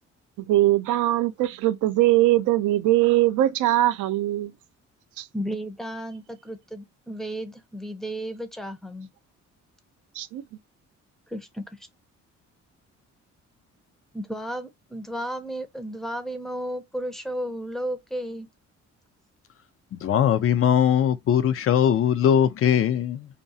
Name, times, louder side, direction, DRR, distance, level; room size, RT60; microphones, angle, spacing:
voice 1, 0.4-4.5 5.2-5.3 10.2-10.4, right 15 dB, 80° right, 0.5 m, -21 dB
voice 2, 5.3-9.1 11.3-11.6 14.1-18.5, equal, ahead, 0.6 m, -33 dB
voice 3, 19.9-23.3, left 9 dB, 50° left, 0.5 m, -20 dB
2.4 x 2.3 x 2.6 m
cardioid pair, 90°, 30 cm